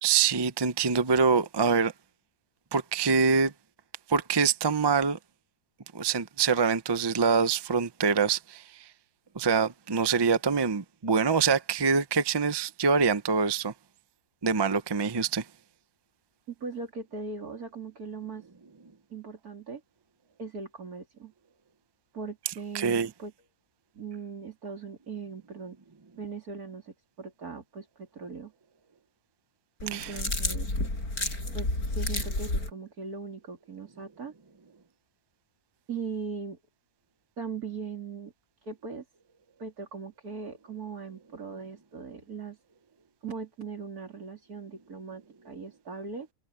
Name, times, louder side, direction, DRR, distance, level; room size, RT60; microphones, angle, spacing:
voice 1, 0.0-1.9 2.7-3.5 4.1-5.2 5.9-8.6 9.3-13.7 14.4-15.4 22.7-23.1 29.9-30.1, right 5 dB, 25° right, 0.5 m, -25 dB
voice 2, 16.5-18.4 19.1-19.8 20.4-21.3 22.1-23.3 23.9-25.8 26.1-28.5 29.8-30.7 31.5-31.7 31.9-34.3 35.9-36.6 37.4-38.3 38.6-39.0 39.6-42.6 43.2-46.3, right 5 dB, 75° right, 3.8 m, -39 dB
sound 1, 29.8-32.7, left 2 dB, 75° left, 8.5 m, -30 dB
omnidirectional pair, 1.6 m